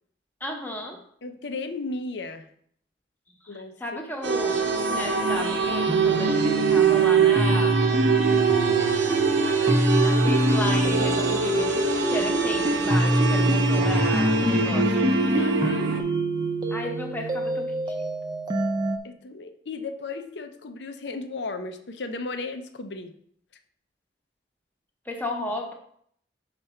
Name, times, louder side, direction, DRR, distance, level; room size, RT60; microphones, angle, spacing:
voice 1, 0.4-1.0 3.4-7.9 10.0-15.1 16.7-18.0 25.0-25.7, left 1 dB, 10° left, 2 dB, 0.9 m, -34 dB
voice 2, 1.2-2.5 3.5-4.0 15.4-15.9 19.0-23.1, left 3 dB, 70° left, 8 dB, 0.6 m, -35 dB
sound 1, 4.2-16.0, right 5 dB, 85° right, 0.9 m, -24 dB
sound 2, 5.9-19.0, right 1 dB, 20° right, 0.6 m, -25 dB
6.0 x 5.0 x 4.3 m, 0.64 s
head